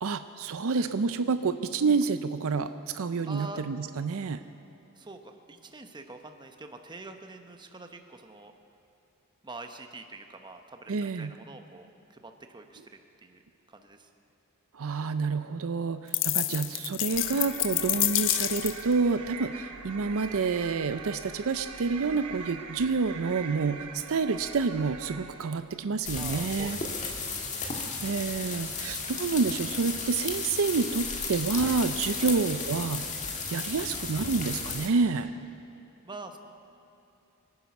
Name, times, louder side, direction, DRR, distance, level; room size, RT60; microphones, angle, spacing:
voice 1, 0.0-4.4 10.9-11.3 14.7-26.8 28.0-33.0 33.5-35.3, right 4 dB, 65° right, 10 dB, 0.5 m, -28 dB
voice 2, 3.3-3.6 4.9-8.5 9.4-13.4 13.7-14.1 26.1-27.2 32.2-32.4 36.0-36.4, right 2 dB, 20° right, 5 dB, 0.9 m, -45 dB
sound 1, 16.1-18.9, left 15 dB, 60° left, 0.5 m, -28 dB
sound 2, 17.1-25.7, right 6 dB, 85° right, 1.0 m, -43 dB
sound 3, 26.0-34.9, left 4 dB, 35° left, 1.7 m, -34 dB
24.5 x 9.4 x 6.0 m, 2.9 s
head